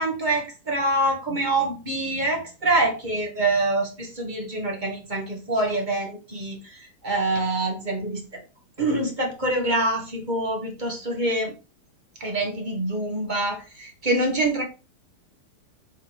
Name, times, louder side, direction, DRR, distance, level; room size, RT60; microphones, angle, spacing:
voice 1, 0.0-8.4 8.8-11.5 12.2-14.6, right 2 dB, 20° right, 1 dB, 1.3 m, -25 dB
8.0 x 4.3 x 5.2 m, 0.31 s
omnidirectional pair, 3.9 m